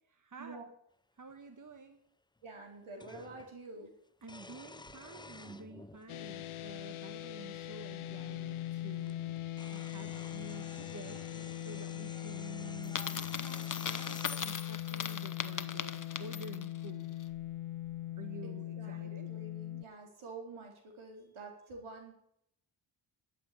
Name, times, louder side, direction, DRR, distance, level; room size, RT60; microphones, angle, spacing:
voice 1, 0.1-0.6 1.2-2.0 4.2-9.3 9.7-11.3 11.6-17.1 18.2-19.3, right 3 dB, 40° right, 7 dB, 1.5 m, -50 dB
sound 1, 1.3-1.4 3.0-3.5 4.2-6.1 7.0-7.1 8.6-8.7 9.0-14.4, left 2 dB, 10° left, 0.5 m, -51 dB
voice 2, 2.4-3.9 18.4-22.2, right 3 dB, 75° right, 1 dB, 4.1 m, -48 dB
sound 2, 6.1-19.8, left 14 dB, 80° left, 0.7 m, -41 dB
Coin (dropping), 12.8-16.8, left 6 dB, 40° left, 1.0 m, -39 dB
13.0 x 7.6 x 8.4 m, 0.71 s
cardioid pair, 55°, 49 cm